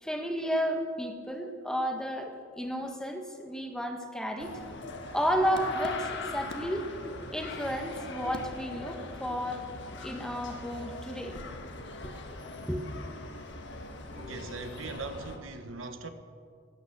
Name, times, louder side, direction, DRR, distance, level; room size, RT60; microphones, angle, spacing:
voice 1, 0.0-4.6 5.1-6.9 7.3-9.6 10.0-11.4 12.7-12.8, equal, 5° left, 1.4 m, -32 dB
sound 1, 4.4-15.4, left 2 dB, 60° left, 1.6 m, -41 dB
voice 2, 14.1-16.1, right 3 dB, 80° right, 1.2 m, -40 dB
17.5 x 11.5 x 6.8 m
head